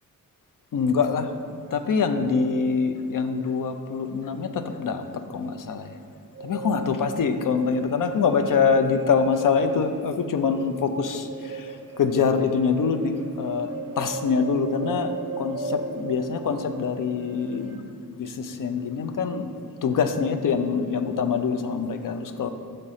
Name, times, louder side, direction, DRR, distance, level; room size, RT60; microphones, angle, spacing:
voice 1, 0.7-5.0 5.3-5.9 6.4-11.7 12.0-13.7 14.0-17.8 18.1-19.5 19.8-22.5, left 5 dB, 65° left, 8 dB, 0.5 m, -24 dB
sound 1, 6.3-17.8, right 4 dB, 40° right, 0.6 m, -37 dB
6.6 x 4.1 x 4.9 m, 2.3 s
cardioid pair, 65°, 35 cm